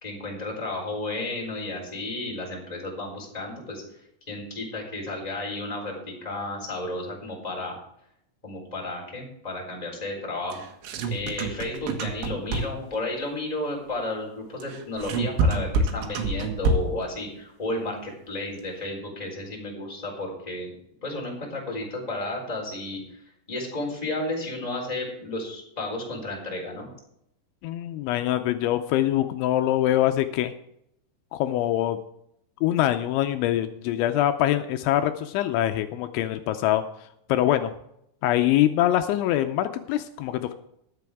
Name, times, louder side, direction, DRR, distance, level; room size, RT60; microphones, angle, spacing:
voice 1, 0.0-3.8 4.3-7.8 8.4-10.6 11.1-20.7 21.0-23.0 23.5-26.9, left 2 dB, 10° left, -1 dB, 3.1 m, -32 dB
sound 1, 10.5-13.0 14.6-17.1, right 3 dB, 80° right, 3.9 m, -27 dB
voice 2, 27.6-30.5 31.3-32.0 32.6-36.8 37.3-37.7 38.2-40.5, left 13 dB, 85° left, 8 dB, 2.9 m, -24 dB
21.0 x 7.7 x 3.5 m, 0.76 s
omnidirectional pair, 5.4 m